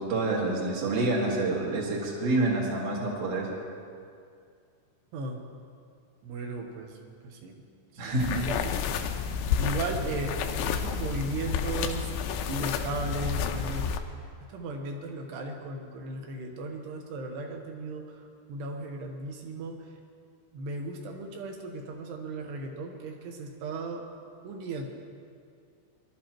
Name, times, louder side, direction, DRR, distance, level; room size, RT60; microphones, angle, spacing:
voice 1, 0.0-3.5 8.0-8.4, right 2 dB, 50° right, -2 dB, 1.9 m, -27 dB
voice 2, 6.2-7.0 7.2-7.6 7.9-8.7 9.6-10.4 10.6-12.1 12.5-13.9 14.5-18.2 18.5-19.8 20.5-24.0 24.4-24.9, right 2 dB, 75° right, 2 dB, 2.7 m, -36 dB
sound 1, 8.2-14.0, left 7 dB, 85° left, 3.0 m, -30 dB
24.0 x 12.0 x 3.0 m, 2.3 s
omnidirectional pair, 5.6 m